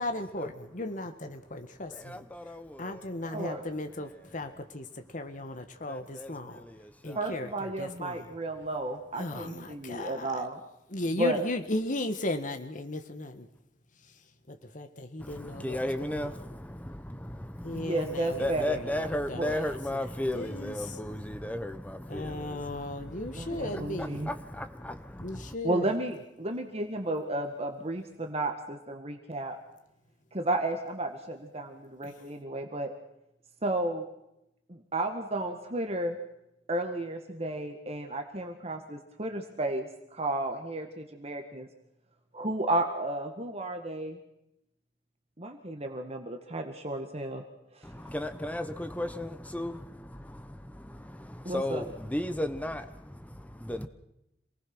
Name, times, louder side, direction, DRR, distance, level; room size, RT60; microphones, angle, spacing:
voice 1, 0.0-8.3 9.1-10.5 10.9-13.5 13.9-16.5 17.6-20.1 20.3-21.0 22.1-24.3 25.2-26.0 32.0-32.2, left 1 dB, 45° left, 1.5 m, -37 dB
voice 2, 1.9-3.6 5.9-7.6 9.3-9.4 15.2-25.5 47.8-53.9, left 1 dB, 10° left, 1.0 m, -36 dB
voice 3, 7.2-10.6 11.2-11.4 17.7-18.8 19.4-19.5 23.4-24.3 25.6-29.6 30.3-32.9 33.6-34.1 34.7-36.2 36.7-41.7 42.3-44.2 45.4-47.4 47.7-47.8 51.5-51.8, right 1 dB, 35° right, 1.9 m, -33 dB
27.5 x 19.5 x 6.2 m
head